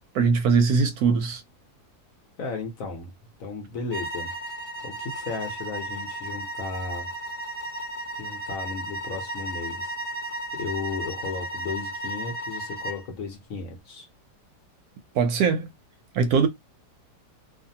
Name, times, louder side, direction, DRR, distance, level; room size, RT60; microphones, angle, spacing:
voice 1, 0.1-1.4 15.1-15.7 16.1-16.5, right 5 dB, 70° right, 1.0 m, -21 dB
voice 2, 2.4-3.1 3.4-4.3 4.8-7.1 8.2-9.9 10.5-14.1, left 4 dB, 60° left, 1.1 m, -34 dB
sound 1, 3.9-13.0, right 1 dB, 30° right, 0.8 m, -34 dB
2.6 x 2.5 x 2.7 m
omnidirectional pair, 1.8 m